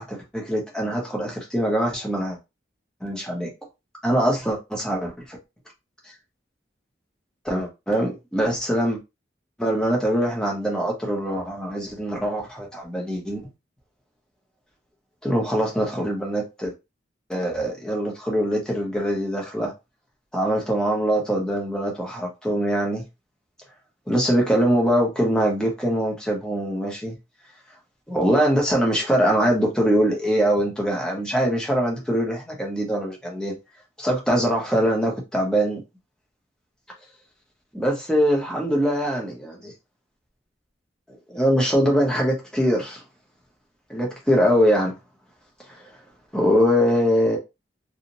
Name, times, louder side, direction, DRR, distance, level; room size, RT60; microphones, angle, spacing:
voice 1, 0.0-2.4 3.0-3.5 4.0-5.4 6.0-6.1 7.4-9.0 9.6-13.5 15.2-16.7 17.3-19.7 20.3-23.0 24.1-27.2 28.1-33.5 34.0-35.8 37.7-39.7 41.3-43.0 43.9-44.9 45.7-45.9 46.3-47.4, equal, 5° left, 0.7 m, -23 dB
2.6 x 2.0 x 2.9 m
head